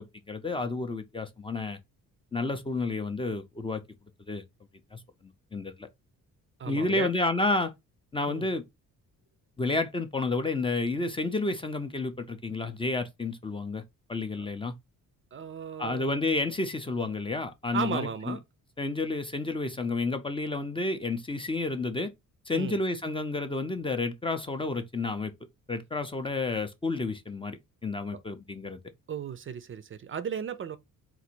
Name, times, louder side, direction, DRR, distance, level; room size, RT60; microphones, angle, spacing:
voice 1, 0.0-1.8 2.3-3.8 4.3-4.4 4.9-5.9 6.6-7.7 8.1-8.6 9.6-13.8 14.1-14.7 15.8-18.4 18.8-22.1 22.5-25.3 25.7-28.8, left 3 dB, 15° left, 0.5 m, -30 dB
voice 2, 6.6-7.1 8.3-8.5 14.4-14.5 15.3-16.1 17.7-18.4 22.5-22.8 28.1-28.2 29.1-30.8, right 7 dB, 40° right, 0.5 m, -35 dB
3.9 x 2.5 x 4.4 m
cardioid pair, 135°, 33 cm